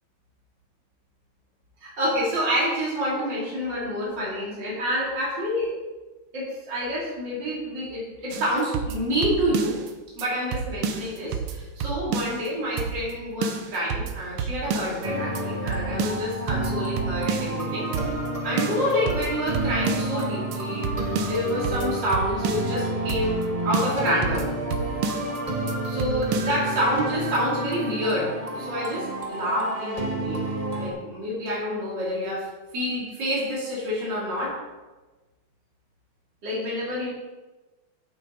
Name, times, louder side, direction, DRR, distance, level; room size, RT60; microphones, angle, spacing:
voice 1, 1.8-5.7 6.3-9.8 10.2-17.9 18.4-23.4 23.6-24.5 25.8-32.5 32.7-34.5 36.4-37.1, equal, 55° right, -6 dB, 3.4 m, -28 dB
sound 1, 8.3-9.9 10.2-10.3 10.5-12.5 12.8-13.1 13.4-15.1 15.4-15.5 15.7-17.6 17.9-18.3 18.6-20.2 20.5-20.6 20.8-22.8 23.1-23.5 23.7-25.4 25.7-25.8 26.0-26.6, right 6 dB, 85° right, 1.7 m, -30 dB
sound 2, 15.0-30.9, right 1 dB, 25° right, 0.9 m, -30 dB
10.5 x 9.0 x 3.9 m, 1.2 s
omnidirectional pair, 2.4 m